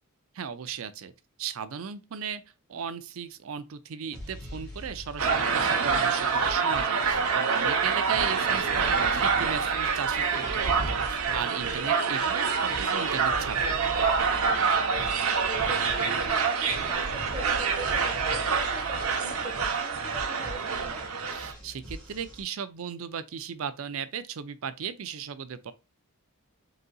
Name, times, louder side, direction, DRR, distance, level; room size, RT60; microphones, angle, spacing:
voice 1, 0.3-1.1 1.4-2.4 2.7-13.8 21.3-25.7, right 7 dB, 70° right, 0.5 m, -36 dB
sound 1, 4.1-22.4, equal, 5° left, 1.5 m, -43 dB
sound 2, 5.2-21.5, right 5 dB, 85° right, 0.8 m, -26 dB
voice 2, 14.3-21.0, right 1 dB, 15° right, 1.1 m, -42 dB
4.0 x 3.8 x 2.3 m
head